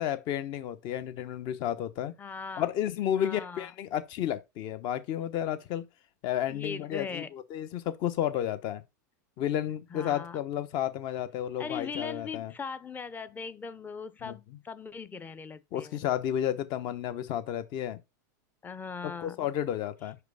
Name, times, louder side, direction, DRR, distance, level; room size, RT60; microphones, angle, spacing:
voice 1, 0.0-2.1 2.6-5.9 6.2-8.8 9.4-12.5 14.2-14.3 15.7-18.0 19.0-20.2, left 11 dB, 45° left, 1.0 m, -32 dB
voice 2, 2.2-2.7 3.2-3.7 6.5-7.3 9.9-10.4 11.6-16.0 18.6-19.5, left 5 dB, 15° left, 0.7 m, -39 dB
5.4 x 5.0 x 4.8 m
hypercardioid pair, 115°, 10 cm